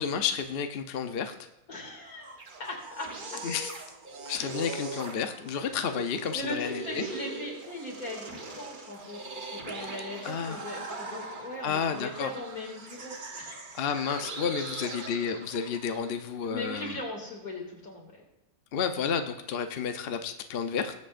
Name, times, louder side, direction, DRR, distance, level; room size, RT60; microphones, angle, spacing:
voice 1, 0.0-1.3 3.4-3.7 4.3-7.0 9.8-9.9 10.2-10.6 11.6-12.3 13.7-17.0 18.7-20.9, left 6 dB, 50° left, 7 dB, 0.8 m, -31 dB
voice 2, 1.7-3.4 6.3-13.8 14.6-14.8 16.4-18.2, left 1 dB, 80° left, 0 dB, 2.9 m, -39 dB
sound 1, 2.1-16.2, right 3 dB, 40° right, 1.1 m, -41 dB
20.0 x 7.7 x 2.5 m, 0.97 s
omnidirectional pair, 1.5 m